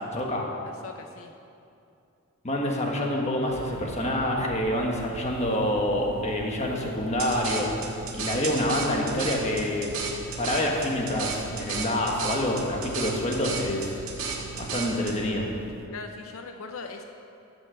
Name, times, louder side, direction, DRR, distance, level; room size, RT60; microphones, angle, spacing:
voice 1, 0.1-0.5 2.4-7.7 8.1-9.9 10.4-14.0 14.6-15.5, left 1 dB, 30° left, 0 dB, 1.4 m, -27 dB
voice 2, 0.6-1.3 15.9-17.0, left 4 dB, 80° left, 5 dB, 0.7 m, -40 dB
sound 1, 3.5-15.9, right 4 dB, 65° right, 0.5 m, -42 dB
sound 2, 7.2-15.2, right 5 dB, 90° right, 1.6 m, -33 dB
11.5 x 6.2 x 7.6 m, 2.6 s
head